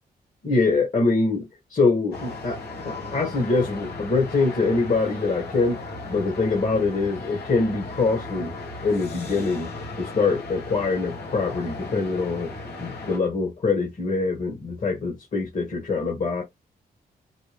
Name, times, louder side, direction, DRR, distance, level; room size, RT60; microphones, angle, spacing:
voice 1, 0.4-2.6 2.9-9.7 10.0-16.4, left 3 dB, 50° left, 2.1 m, -24 dB
sound 1, 2.1-13.2, left 3 dB, 85° left, 1.8 m, -36 dB
5.3 x 2.4 x 3.4 m
cardioid pair, 70°, 16 cm